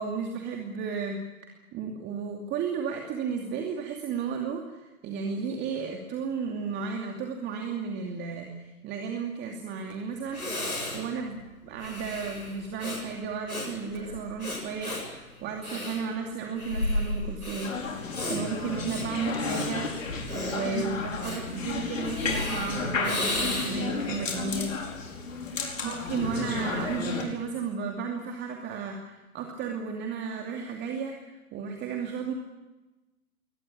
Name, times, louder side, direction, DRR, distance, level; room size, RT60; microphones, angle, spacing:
voice 1, 0.0-24.7 25.6-32.3, right 5 dB, 25° right, 2 dB, 2.6 m, -34 dB
Breathing, 9.9-10.0 10.3-24.0, left 1 dB, 85° left, 7.9 m, -34 dB
sound 1, 17.6-27.2, left 4 dB, 65° left, 5.1 m, -32 dB
23.0 x 19.5 x 8.7 m, 1.1 s
figure-of-eight pair, 110°, 42 cm